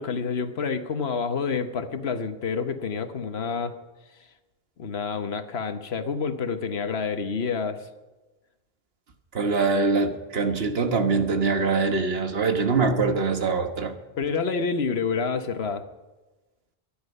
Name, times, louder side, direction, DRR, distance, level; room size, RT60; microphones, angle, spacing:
voice 1, 0.0-3.7 4.8-7.9 14.2-15.8, left 5 dB, 85° left, 8 dB, 1.3 m, -28 dB
voice 2, 9.3-13.9, right 4 dB, 75° right, 7 dB, 1.5 m, -23 dB
23.0 x 10.5 x 5.4 m, 1.1 s
omnidirectional pair, 1.0 m